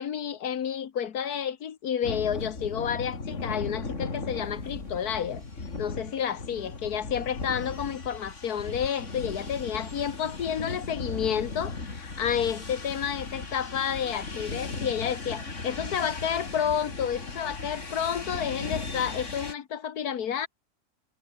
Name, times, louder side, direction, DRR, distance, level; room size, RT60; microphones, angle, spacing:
voice 1, 0.0-5.4 5.8-20.5, left 8 dB, 80° left, 1.7 m, -30 dB
sound 1, 2.0-19.5, left 3 dB, 50° left, 3.4 m, -37 dB
omnidirectional pair, 1.6 m